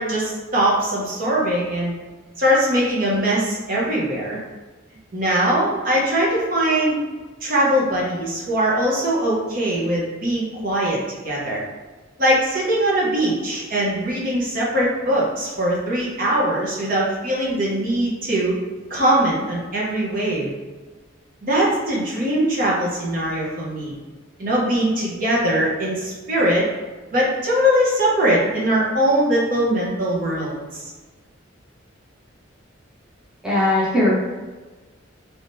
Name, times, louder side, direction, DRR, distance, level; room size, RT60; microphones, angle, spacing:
voice 1, 0.0-1.9 2.4-4.4 5.1-7.0 7.4-11.6 12.2-18.6 18.9-20.5 21.4-23.9 24.4-26.7 27.1-30.6, right 1 dB, 45° right, -5 dB, 0.8 m, -21 dB
voice 2, 33.4-34.2, left 1 dB, 5° right, -8 dB, 0.8 m, -18 dB
3.6 x 3.2 x 2.7 m, 1.3 s
head